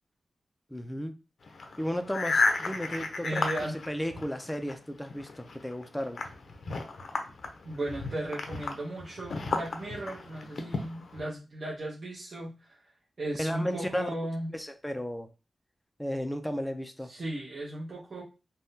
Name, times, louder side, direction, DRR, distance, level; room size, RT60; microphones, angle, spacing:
voice 1, 0.7-1.2 1.8-3.5 3.9-6.2 13.4-14.1 14.5-15.3 16.0-17.1, equal, 5° left, 0.4 m, -34 dB
sound 1, 1.4-4.7 5.1-11.2, left 3 dB, 70° left, 0.6 m, -33 dB
voice 2, 3.2-3.8 7.6-12.8 13.2-14.5 17.1-18.2, right 1 dB, 50° right, 0.9 m, -36 dB
3.5 x 2.2 x 2.7 m
wide cardioid pair, 80°, 0 cm